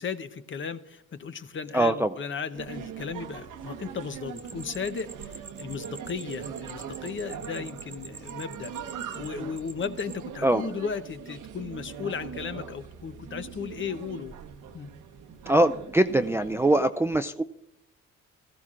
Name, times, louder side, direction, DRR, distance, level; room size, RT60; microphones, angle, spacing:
voice 1, 0.0-8.7 9.1-14.3 14.7-14.9, left 6 dB, 40° left, 11 dB, 0.8 m, -35 dB
voice 2, 1.7-2.2 10.4-10.6 15.5-17.4, right 1 dB, 10° right, 9 dB, 0.4 m, -22 dB
sound 1, 2.5-16.8, right 7 dB, 80° right, 1.1 m, -41 dB
sound 2, 4.4-10.2, right 5 dB, 35° right, 0.9 m, -46 dB
17.5 x 14.0 x 2.5 m, 0.86 s
cardioid pair, 90°, 30 cm